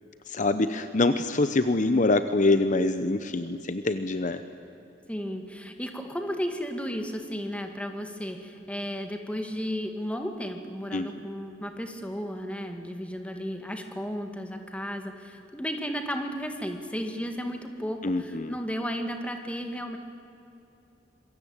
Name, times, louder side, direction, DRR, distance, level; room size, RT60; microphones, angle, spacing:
voice 1, 0.3-4.4 10.9-11.1 18.0-18.6, left 2 dB, 45° left, 10 dB, 0.9 m, -25 dB
voice 2, 5.1-20.0, equal, 5° left, 5 dB, 2.1 m, -34 dB
26.5 x 23.0 x 8.9 m, 2.9 s
head